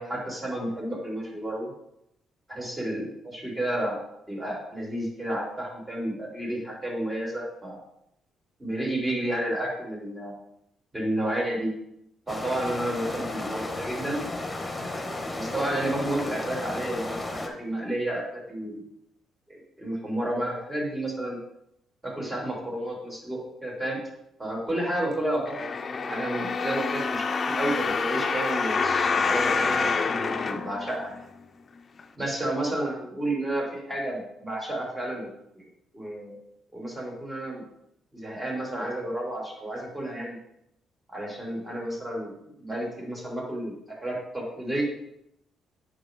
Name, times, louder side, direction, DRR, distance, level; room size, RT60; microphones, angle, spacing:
voice 1, 0.0-1.7 2.5-4.0 4.3-7.8 8.6-10.3 10.9-11.7 12.3-14.3 15.3-18.8 19.5-21.4 22.0-24.0 24.4-25.7 26.1-31.2 32.2-35.3 35.5-35.7 35.9-36.3 36.7-37.6 38.1-40.4 41.1-42.3 42.6-44.8, right 1 dB, 20° right, -3 dB, 3.4 m, -31 dB
sound 1, 12.3-17.5, left 2 dB, 15° left, 1.5 m, -34 dB
sound 2, 25.5-31.4 32.0-32.1, left 4 dB, 40° left, 0.7 m, -27 dB
8.6 x 6.1 x 3.8 m, 0.80 s
cardioid pair, 90°, 0 cm